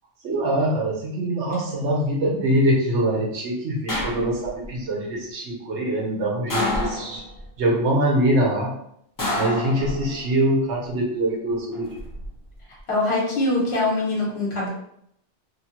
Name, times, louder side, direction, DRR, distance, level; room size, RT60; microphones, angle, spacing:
voice 1, 0.2-7.2 7.6-8.7 9.4-12.0, right 1 dB, 70° right, -1 dB, 1.0 m, -23 dB
sound 1, 3.9-4.7 6.5-7.4 9.2-10.3 11.7-12.3, left 1 dB, 25° left, 0.4 m, -28 dB
voice 2, 12.7-14.7, left 2 dB, 60° left, -4 dB, 1.2 m, -23 dB
3.1 x 2.3 x 2.8 m, 0.73 s
omnidirectional pair, 1.2 m